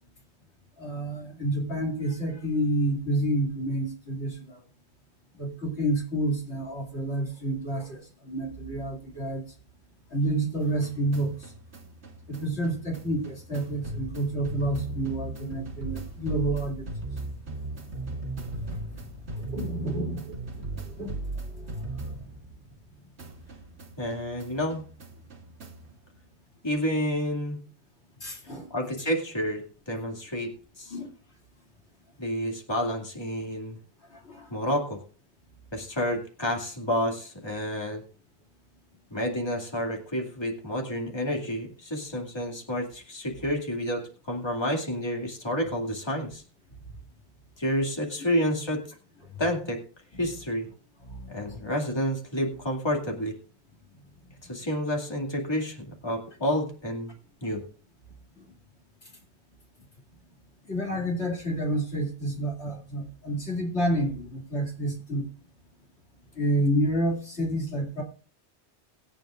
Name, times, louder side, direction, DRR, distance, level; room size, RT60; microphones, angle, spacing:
voice 1, 0.8-4.6 5.4-8.0 8.3-9.4 10.1-11.3 12.3-16.9 19.5-20.2 20.7-21.1 21.6-21.7 28.2-28.6 30.9-31.1 34.3-34.4 60.7-65.3 66.4-68.0, right 1 dB, 80° left, 0 dB, 2.8 m, -29 dB
sound 1, 10.6-22.9 23.2-26.0, right 2 dB, 75° right, 1.7 m, -38 dB
voice 2, 24.0-24.9 26.6-27.6 28.7-31.0 32.2-33.8 34.5-35.0 35.7-38.0 39.1-46.4 47.6-48.8 49.4-49.8 50.2-50.7 51.3-53.3 54.4-57.1 57.4-57.6, equal, 25° left, 0 dB, 2.4 m, -29 dB
20.5 x 8.9 x 2.5 m, 0.38 s
omnidirectional pair, 1.1 m